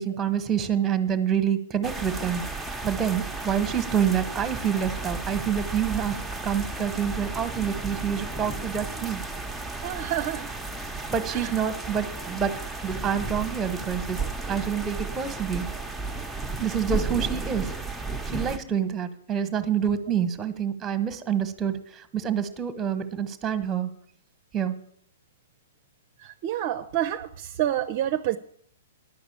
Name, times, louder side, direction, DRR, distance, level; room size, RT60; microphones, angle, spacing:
voice 1, 0.0-2.4 2.8-6.2 6.4-9.2 11.1-12.5 12.8-15.7 16.6-17.7 18.3-23.9 24.5-24.7, right 8 dB, 15° right, 12 dB, 1.2 m, -27 dB
sound 1, 1.8-18.6, right 3 dB, ahead, 0.9 m, -33 dB
voice 2, 9.8-10.5 11.3-11.5 26.2-28.4, right 12 dB, 45° right, 10 dB, 0.6 m, -28 dB
10.5 x 6.0 x 8.6 m, 0.66 s
figure-of-eight pair, 115°, 0 cm